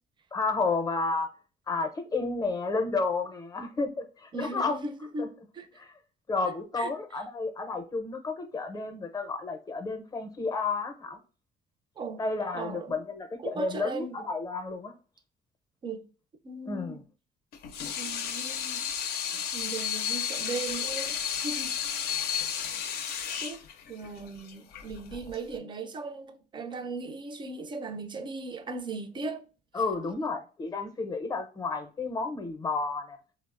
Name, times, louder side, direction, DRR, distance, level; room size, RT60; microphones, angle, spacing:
voice 1, 0.3-1.3 1.7-4.8 5.2-5.3 5.8-5.9 6.3-11.2 12.2-14.9 16.7-17.0 19.3-19.4 29.7-33.2, left 3 dB, 20° left, 0.6 m, -31 dB
voice 2, 4.3-5.7 6.5-6.9 12.0-12.2 12.5-13.0 13.4-14.2 15.8-16.0 16.4-17.0 18.0-18.9 19.5-21.2 21.4-21.7 23.4-23.6 23.9-29.4, right 3 dB, 30° right, 0.4 m, -37 dB
Water tap faucet / Sink (filling or washing), 17.5-25.6, left 8 dB, 70° left, 0.5 m, -33 dB
3.6 x 2.0 x 2.4 m
cardioid pair, 110°, 17 cm